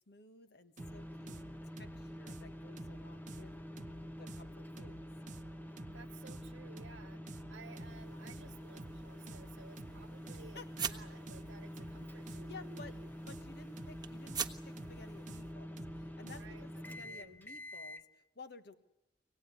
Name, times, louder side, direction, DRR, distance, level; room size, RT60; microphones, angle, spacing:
voice 1, 0.1-3.5 4.2-5.0 10.5-10.9 12.3-13.0 13.3-18.7, left 4 dB, 60° left, 9 dB, 1.5 m, -55 dB
sound 1, 0.8-18.0, equal, 10° left, 0.9 m, -47 dB
sound 2, 0.8-16.7, right 2 dB, 40° right, 0.9 m, -52 dB
voice 2, 5.7-10.6 10.9-13.1 16.3-17.4, right 4 dB, 90° right, 2 dB, 0.8 m, -57 dB
sound 3, 7.8-15.5, right 7 dB, 20° right, 1.3 m, -47 dB
25.0 x 18.5 x 9.6 m, 0.93 s
head